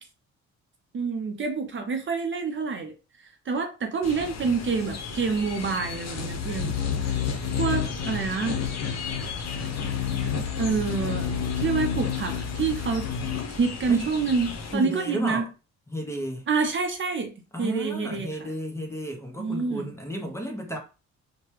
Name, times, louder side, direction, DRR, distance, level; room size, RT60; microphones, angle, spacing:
voice 1, 0.9-2.9 3.5-6.7 7.6-8.6 10.6-11.3 11.6-13.1 13.5-15.5 16.5-17.3 17.6-18.3 19.4-19.9, right 5 dB, 40° right, 0.7 m, -27 dB
sound 1, 4.0-14.7, left 7 dB, 60° left, 0.8 m, -30 dB
voice 2, 14.7-15.5 15.9-16.5 17.5-20.8, equal, 10° left, 0.7 m, -32 dB
2.8 x 2.2 x 3.1 m
cardioid pair, 90°, 30 cm